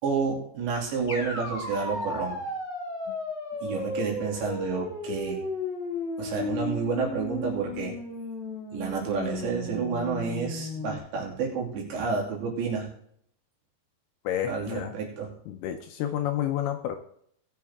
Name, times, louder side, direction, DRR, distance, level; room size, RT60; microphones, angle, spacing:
voice 1, 0.0-2.4 3.6-5.4 6.2-7.9 8.7-12.9 14.5-15.3, right 5 dB, 80° right, -2 dB, 5.0 m, -30 dB
sound 1, 1.1-11.0, left 2 dB, 35° left, 1.1 m, -34 dB
voice 2, 14.2-14.9 15.5-17.0, left 11 dB, 80° left, 6 dB, 2.4 m, -30 dB
19.0 x 6.8 x 3.6 m, 0.66 s
omnidirectional pair, 5.1 m